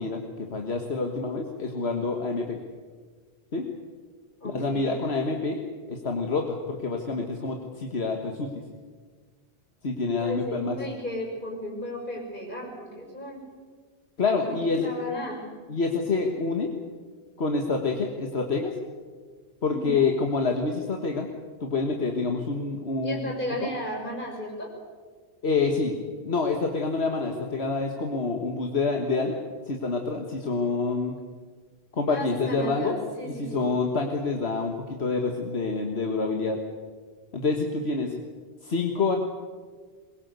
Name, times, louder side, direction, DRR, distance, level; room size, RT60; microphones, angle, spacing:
voice 1, 0.0-2.6 3.5-3.7 4.4-5.6 5.9-8.5 9.8-11.0 14.2-14.9 15.7-16.7 17.4-18.7 19.6-21.3 21.6-23.2 23.6-23.7 25.4-25.9 26.2-29.4 29.7-31.2 31.9-33.0 33.4-36.6 37.3-38.1 38.6-39.2, left 4 dB, 80° left, 3 dB, 1.9 m, -27 dB
voice 2, 4.4-5.0 10.2-13.5 14.4-14.6 14.8-15.4 19.7-20.1 23.0-24.7 32.1-33.7, equal, 50° left, 1 dB, 6.2 m, -34 dB
22.5 x 21.5 x 8.2 m, 1.5 s
omnidirectional pair, 1.1 m